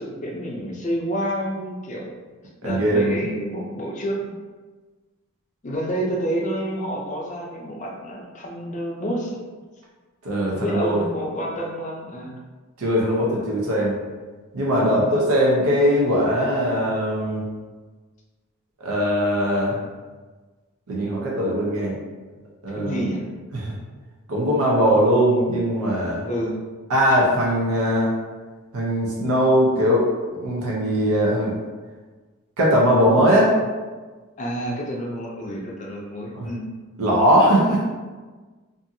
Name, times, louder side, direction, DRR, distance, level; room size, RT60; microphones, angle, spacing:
voice 1, 0.0-2.1 2.6-4.2 5.6-9.4 10.5-12.3 14.7-15.0 22.7-23.2 26.2-26.6 34.4-36.6, equal, 35° left, -2 dB, 0.4 m, -29 dB
voice 2, 2.6-3.2 10.2-11.1 12.8-14.0 14.5-17.5 18.8-19.8 20.9-22.0 22.6-23.1 23.5-23.7 24.3-26.3 26.9-28.1 28.7-30.1 30.4-31.5 32.6-33.5 36.3-36.5 37.0-37.8, equal, 90° right, -3 dB, 0.6 m, -20 dB
2.6 x 2.4 x 2.6 m, 1.3 s
head